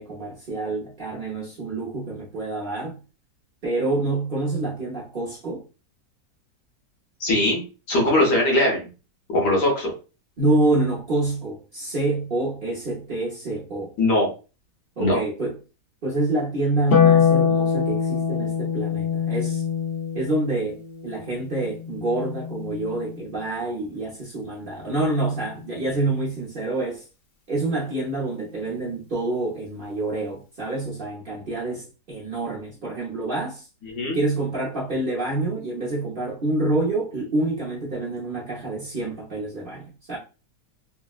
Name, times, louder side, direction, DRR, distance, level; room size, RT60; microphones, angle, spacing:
voice 1, 0.0-3.0 3.6-5.6 8.2-8.3 10.4-13.9 15.0-15.6 16.0-19.6 20.1-27.1 27.5-33.7 34.1-40.2, right 2 dB, 50° right, 0.6 m, -27 dB
voice 2, 7.2-7.6 7.9-8.9 9.3-9.9 14.0-14.3 15.0-15.2 33.9-34.2, left 1 dB, 70° left, 1.7 m, -20 dB
Harp, 16.9-23.4 25.0-26.0, left 7 dB, 90° left, 0.5 m, -24 dB
3.7 x 2.0 x 2.4 m
omnidirectional pair, 1.9 m